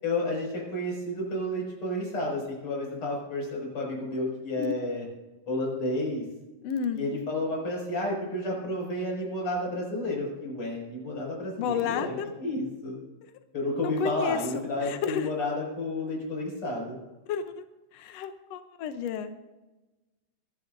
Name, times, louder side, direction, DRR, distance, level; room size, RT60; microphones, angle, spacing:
voice 1, 0.0-5.0 5.5-6.2 6.9-13.0 13.5-17.0, left 1 dB, 40° left, -2 dB, 7.0 m, -31 dB
voice 2, 6.6-7.0 11.6-12.3 13.8-14.4 14.8-15.3 17.3-17.6 17.9-19.3, left 8 dB, 80° left, 8 dB, 1.4 m, -31 dB
26.0 x 11.0 x 2.6 m, 1.1 s
omnidirectional pair, 3.9 m